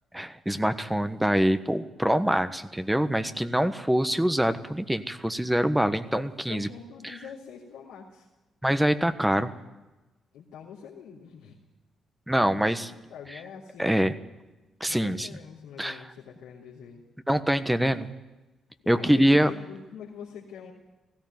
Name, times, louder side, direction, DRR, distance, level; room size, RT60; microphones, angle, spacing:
voice 1, 0.1-6.7 7.0-7.1 8.6-9.5 12.3-12.9 13.8-14.1 14.8-15.3 15.8-16.0 17.3-18.1 18.9-19.5, equal, 5° right, 10 dB, 1.3 m, -24 dB
voice 2, 6.5-8.3 10.3-11.6 12.4-12.7 13.1-14.0 14.9-17.0 18.8-20.7, left 7 dB, 75° left, -7 dB, 3.0 m, -44 dB
16.5 x 16.5 x 9.5 m, 1.1 s
hypercardioid pair, 45°, 0 cm